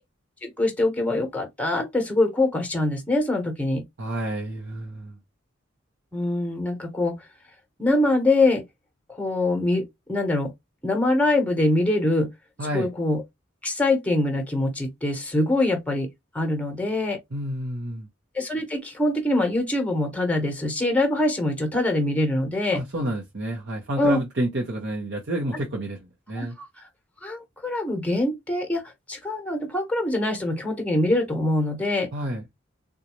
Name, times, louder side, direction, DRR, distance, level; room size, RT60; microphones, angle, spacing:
voice 1, 0.4-3.8 6.1-7.1 7.8-8.6 9.1-9.8 10.1-10.5 10.8-12.3 12.7-13.2 13.6-16.1 16.3-17.2 18.3-22.8 24.0-24.2 26.4-26.7 27.2-28.8 29.1-32.1, left 2 dB, 5° left, 1.0 m, -24 dB
voice 2, 4.0-5.2 12.6-12.9 17.3-18.1 22.7-26.6 32.1-32.4, right 1 dB, 60° right, 0.8 m, -29 dB
3.9 x 2.3 x 3.0 m
head